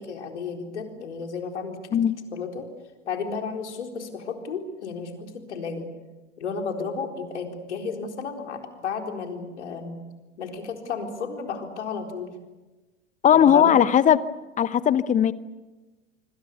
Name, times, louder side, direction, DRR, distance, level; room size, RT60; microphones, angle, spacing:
voice 1, 0.0-1.8 2.3-2.7 3.0-5.9 6.4-10.0 10.4-12.3 13.3-13.8, left 5 dB, 70° left, 3 dB, 4.2 m, -33 dB
voice 2, 13.2-14.2 14.6-15.3, left 9 dB, 20° left, 17 dB, 0.9 m, -18 dB
26.0 x 25.5 x 6.8 m, 1.2 s
figure-of-eight pair, 90°, 36 cm